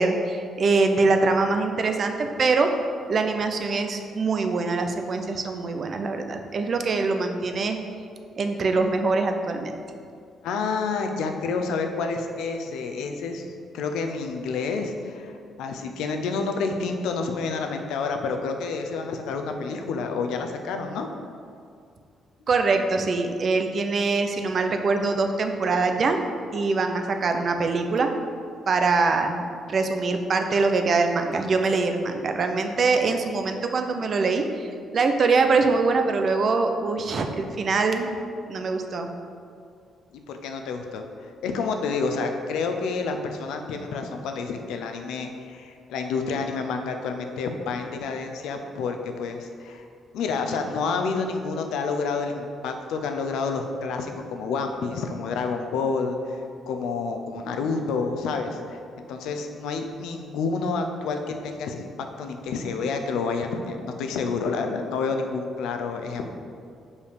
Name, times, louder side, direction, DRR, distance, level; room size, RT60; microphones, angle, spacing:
voice 1, 0.0-2.7 3.1-7.8 8.4-9.7 22.5-26.2 26.5-28.1 28.7-29.4 29.7-38.1 38.5-39.1, right 3 dB, 50° right, 5 dB, 0.6 m, -23 dB
voice 2, 10.4-13.4 13.7-21.1 40.1-49.8 50.1-56.4 56.7-58.8 59.1-66.3, left 4 dB, 85° left, 5 dB, 0.6 m, -29 dB
5.5 x 4.8 x 5.1 m, 2.3 s
cardioid pair, 90°, 0 cm